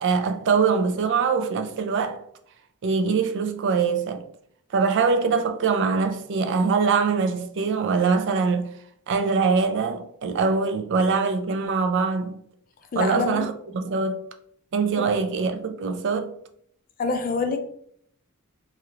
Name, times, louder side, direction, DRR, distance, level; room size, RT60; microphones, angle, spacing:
voice 1, 0.0-2.2 2.8-4.3 4.7-8.7 9.1-12.3 13.0-14.2 14.7-16.3, right 5 dB, 55° right, 0.4 m, -23 dB
voice 2, 12.9-13.5 15.0-15.1 17.0-17.6, left 4 dB, 40° left, 0.4 m, -26 dB
2.9 x 2.5 x 2.8 m
head